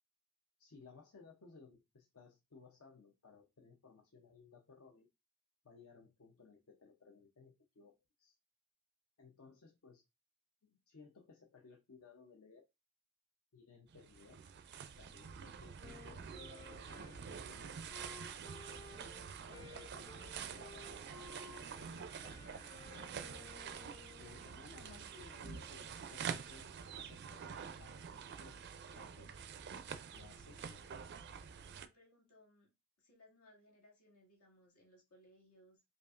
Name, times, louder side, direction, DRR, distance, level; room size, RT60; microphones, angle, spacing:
voice 1, 0.6-5.1 5.6-8.3 9.2-10.0 10.6-12.7 13.5-14.4 15.0-17.7 18.1-18.6 19.5-23.5 24.2-27.5 27.8-28.6 28.9-29.4 30.1-30.9 31.4-31.5, left 4 dB, 65° left, 2 dB, 0.6 m, -60 dB
sound 1, 13.9-31.9, right 6 dB, 50° right, 0.4 m, -47 dB
Wind instrument woodwind instrument, 15.8-24.5, left 3 dB, 20° left, 0.6 m, -57 dB
voice 2, 24.6-24.9 30.6-31.1 31.8-32.7 33.0-35.8, left 1 dB, 80° left, -1 dB, 1.9 m, -66 dB
5.1 x 2.4 x 2.4 m, 0.23 s
head